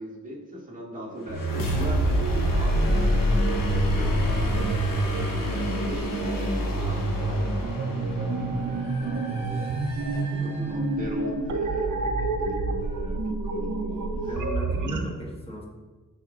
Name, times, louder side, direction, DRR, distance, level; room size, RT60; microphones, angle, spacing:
voice 1, 0.0-7.5 7.9-9.7 10.0-14.1 14.7-14.9, left 1 dB, 25° right, -4 dB, 1.4 m, -38 dB
sound 1, 1.3-11.0, left 1 dB, 80° left, 1.0 m, -28 dB
sound 2, 1.3-15.0, right 3 dB, 65° right, 0.7 m, -29 dB
voice 2, 14.1-15.7, left 1 dB, 15° left, -1 dB, 1.0 m, -37 dB
10.5 x 3.6 x 2.5 m, 1.3 s
wide cardioid pair, 120°, 33 cm